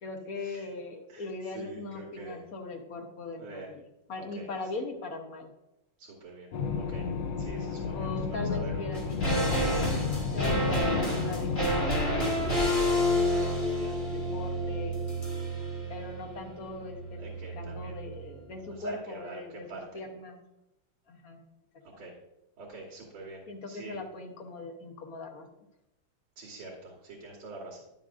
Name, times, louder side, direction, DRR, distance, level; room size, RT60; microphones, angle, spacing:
voice 1, 0.0-3.8 4.1-5.5 7.9-9.7 10.1-13.0 13.4-15.0 15.9-20.4 21.1-21.4 21.9-22.1 23.5-25.5, left 2 dB, 55° left, 3 dB, 1.1 m, -40 dB
voice 2, 1.5-2.4 3.4-3.7 4.4-4.5 6.0-6.5 6.8-7.1 7.4-8.8 12.9-14.0 17.2-17.9 18.8-19.4 19.7-20.0 22.0-22.1 22.6-24.0 26.4-27.8, right 3 dB, 80° right, -4 dB, 2.2 m, -45 dB
sound 1, 6.5-11.7, left 5 dB, 70° left, 1.0 m, -32 dB
sound 2, 8.9-18.3 18.6-18.7, equal, 25° left, 1.8 m, -29 dB
10.5 x 7.2 x 2.5 m, 0.90 s
omnidirectional pair, 2.3 m